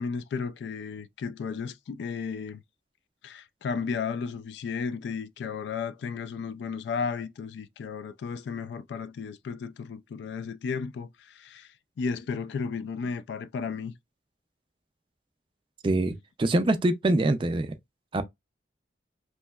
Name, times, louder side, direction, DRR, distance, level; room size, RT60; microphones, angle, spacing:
voice 1, 0.0-2.6 3.2-13.9, left 5 dB, 75° left, 0.3 m, -34 dB
voice 2, 15.8-17.7 18.1-18.2, right 2 dB, 30° right, 0.3 m, -24 dB
3.1 x 2.7 x 2.2 m
head